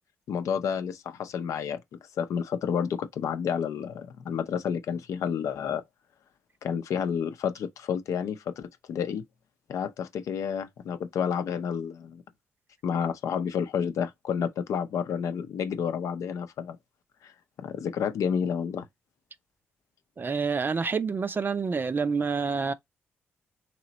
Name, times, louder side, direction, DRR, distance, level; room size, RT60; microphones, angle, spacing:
voice 1, 0.3-1.8 2.2-5.8 6.6-9.2 9.7-12.2 12.8-16.8 17.2-17.3 17.6-18.9, left 7 dB, 70° left, 0.6 m, -30 dB
voice 2, 20.2-22.7, right 5 dB, 35° right, 0.5 m, -27 dB
3.0 x 3.0 x 3.9 m
supercardioid pair, 55°, 6 cm